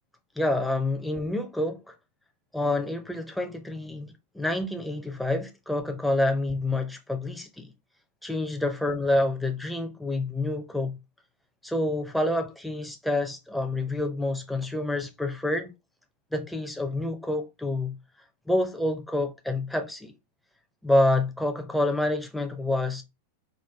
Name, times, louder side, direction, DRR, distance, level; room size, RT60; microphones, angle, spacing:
voice 1, 0.4-1.9 2.5-7.7 8.2-11.0 11.6-15.7 16.3-18.0 18.5-20.1 20.8-23.0, left 1 dB, 5° left, 0.6 m, -27 dB
3.8 x 2.5 x 3.3 m
figure-of-eight pair, 90°, 0 cm